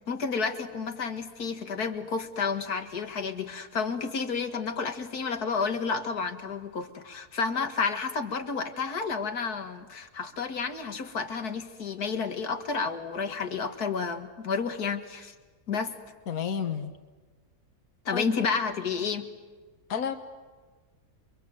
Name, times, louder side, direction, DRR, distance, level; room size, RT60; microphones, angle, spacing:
voice 1, 0.1-15.3 15.7-15.9 18.1-19.3, left 5 dB, 90° left, 7 dB, 2.4 m, -31 dB
voice 2, 16.3-16.9 18.1-18.3 19.9-20.2, left 7 dB, 70° left, 6 dB, 1.8 m, -30 dB
29.5 x 25.0 x 7.9 m, 1.4 s
omnidirectional pair, 1.6 m